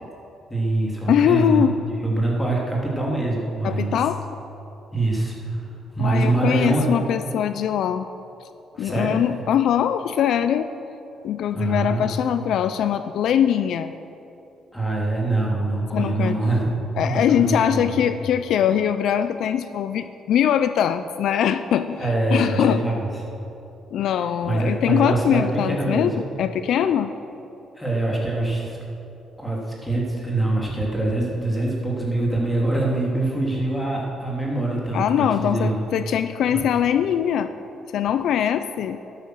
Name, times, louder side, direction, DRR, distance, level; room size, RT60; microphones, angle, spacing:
voice 1, 0.5-1.7 2.0-4.0 4.9-5.7 5.9-6.9 8.7-9.2 11.5-12.0 14.7-16.8 17.0-17.9 22.0-23.1 24.4-26.1 27.8-28.8 29.4-35.8 36.5-36.6, right 2 dB, 10° left, -3 dB, 3.1 m, -24 dB
voice 2, 1.1-1.8 3.6-4.2 6.0-8.1 8.8-10.7 11.2-13.9 15.9-16.4 17.0-22.8 23.9-27.1 34.9-37.5 37.9-39.0, left 9 dB, 70° left, 11 dB, 0.5 m, -22 dB
13.0 x 11.5 x 6.3 m, 2.9 s
cardioid pair, 125°, 0 cm